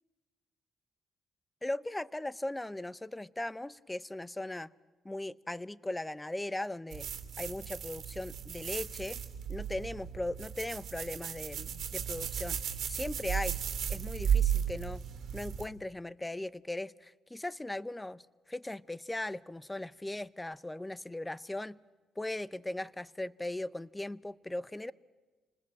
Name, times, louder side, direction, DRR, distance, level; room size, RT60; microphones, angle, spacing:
voice 1, 1.6-4.7 5.0-7.1 7.4-9.2 9.5-12.6 12.9-13.6 13.9-15.0 15.3-18.2 18.5-21.8 22.2-24.9, left 1 dB, 10° left, 20 dB, 0.7 m, -38 dB
sound 1, 6.9-15.7, right 8 dB, 65° right, 2.9 m, -35 dB
29.0 x 20.5 x 7.4 m, 1.3 s
cardioid pair, 90°, 0 cm